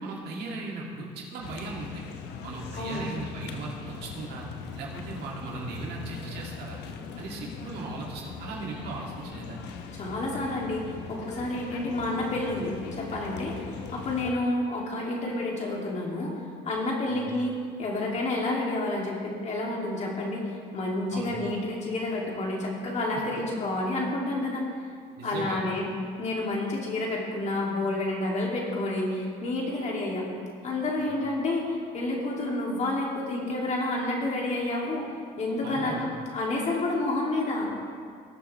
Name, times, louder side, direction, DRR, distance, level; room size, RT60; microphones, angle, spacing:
voice 1, 0.0-2.0 2.4-4.5 4.7-6.8 7.2-9.6 17.1-17.3 21.1-21.4 25.2-25.6 31.0-31.1 35.6-36.0, right 3 dB, 75° right, -3 dB, 2.5 m, -38 dB
sound 1, 1.4-14.3, left 6 dB, 85° left, 0.9 m, -40 dB
voice 2, 2.7-3.1 9.9-13.5 13.9-16.3 16.6-20.4 20.7-24.6 25.2-25.9 26.2-30.3 30.6-35.0 35.4-36.1 36.3-37.7, left 2 dB, 45° left, -3 dB, 2.7 m, -29 dB
19.5 x 7.0 x 3.3 m, 2.2 s
cardioid pair, 110°, 17 cm